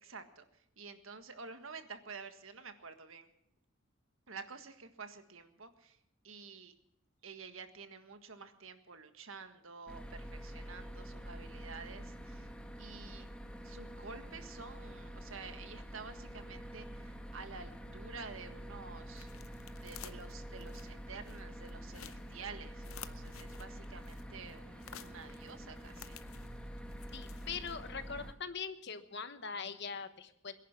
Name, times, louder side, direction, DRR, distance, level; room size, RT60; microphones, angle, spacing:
voice 1, 0.0-3.3 4.3-6.0 6.2-6.7 7.2-12.5 12.8-13.3 13.6-19.6 19.8-26.2, right 5 dB, 80° right, 8 dB, 1.6 m, -50 dB
sound 1, 9.9-28.3, equal, 5° left, 1.2 m, -47 dB
sound 2, 17.3-28.2, left 9 dB, 85° left, 0.8 m, -55 dB
voice 2, 27.1-30.5, left 6 dB, 55° left, 10 dB, 1.2 m, -42 dB
22.0 x 11.0 x 6.0 m, 0.79 s
head